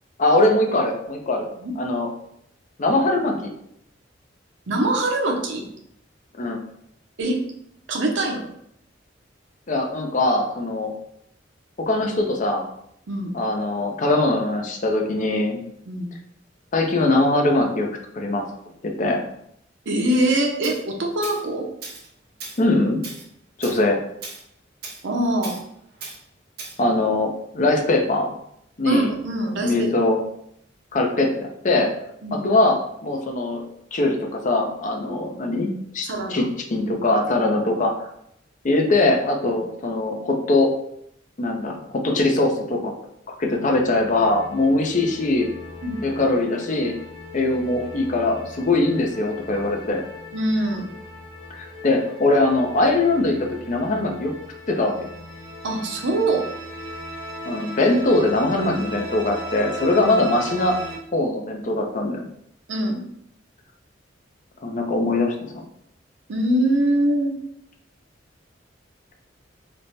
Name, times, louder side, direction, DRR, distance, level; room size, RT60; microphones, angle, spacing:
voice 1, 0.2-1.5 1.8-2.1 2.8-3.5 6.4-6.6 9.7-10.9 11.8-12.6 13.3-15.6 16.7-17.9 18.1-18.5 18.8-19.2 22.6-23.0 23.6-24.0 26.8-28.3 28.8-29.1 29.6-30.2 30.9-31.9 32.3-33.6 33.9-37.9 38.6-40.7 41.4-42.9 43.3-45.5 46.0-47.0 47.3-50.0 51.6-54.3 54.7-55.1 57.5-60.8 61.1-62.3 64.6-65.3, left 2 dB, 45° left, 2 dB, 0.5 m, -21 dB
voice 2, 4.7-5.6 7.2-7.4 7.9-8.5 13.1-13.3 15.9-16.1 19.9-21.7 25.0-25.5 28.8-29.9 32.2-32.5 36.0-36.5 45.8-46.0 50.3-50.9 55.6-56.5 62.7-63.0 66.3-67.4, right 1 dB, 90° right, 2 dB, 0.7 m, -23 dB
Tools, 20.6-20.8 21.2-21.4 21.8-22.1 22.4-22.6 23.0-23.3 23.6-23.8 24.2-24.4 24.8-25.0 25.4-25.6 26.0-26.2 26.6-26.8, right 4 dB, 55° right, 0.7 m, -36 dB
sound 1, 43.6-61.0, left 1 dB, 25° right, 1.1 m, -38 dB
3.2 x 2.1 x 4.0 m, 0.73 s
head